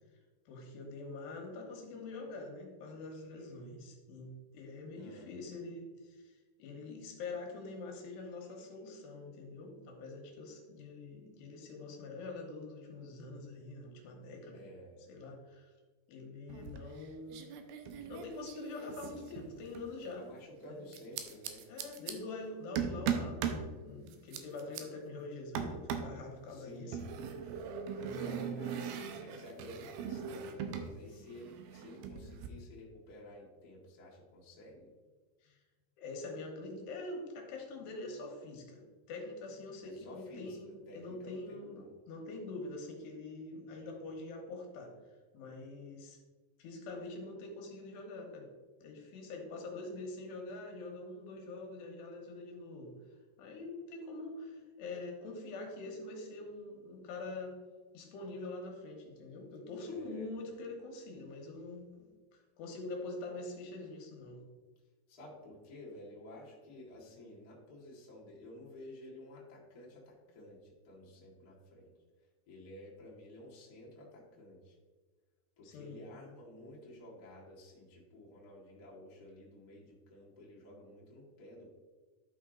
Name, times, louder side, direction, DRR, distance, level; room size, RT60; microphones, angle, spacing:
voice 1, 0.5-14.6 15.1-15.7 16.1-17.5 18.1-20.2 20.6-20.8 21.7-27.0 27.5-27.6 27.9-28.9 35.4-35.6 36.0-44.9 45.3-46.2 46.6-48.5 48.8-52.9 53.4-57.6 57.9-61.9 62.3-64.4 75.6-76.1, left 2 dB, 75° left, 1 dB, 3.2 m, -45 dB
voice 2, 4.9-5.3 14.5-15.0 20.1-21.7 26.5-27.1 28.1-34.9 39.8-41.9 59.9-60.3 65.1-71.9 72.5-74.7 75.6-81.7, left 1 dB, 35° left, -5 dB, 1.6 m, -52 dB
sound 1, 16.5-17.0 17.3-19.9 20.9-22.1 22.8-23.7 24.1-24.8 25.5-26.2 26.9-30.9 31.2-32.5, right 7 dB, 80° right, 2.2 m, -39 dB
11.5 x 5.5 x 3.8 m, 1.4 s
omnidirectional pair, 5.1 m